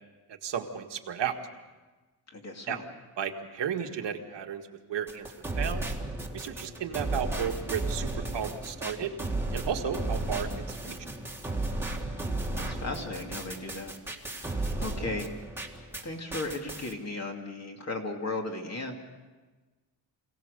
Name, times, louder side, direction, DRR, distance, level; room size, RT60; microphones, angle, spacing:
voice 1, 0.3-1.3 2.7-2.8 3.2-5.3 5.6-5.9 6.3-9.1 9.5-10.9, right 8 dB, 75° right, 3 dB, 1.8 m, -33 dB
voice 2, 2.3-2.8 12.5-13.9 14.3-15.3 16.0-18.9, left 2 dB, 35° left, 2 dB, 2.7 m, -36 dB
Noisy drum loop, 5.1-16.0 16.3-16.9, right 2 dB, 5° right, 1.9 m, -34 dB
26.5 x 17.0 x 6.7 m, 1.3 s
cardioid pair, 135°, 43 cm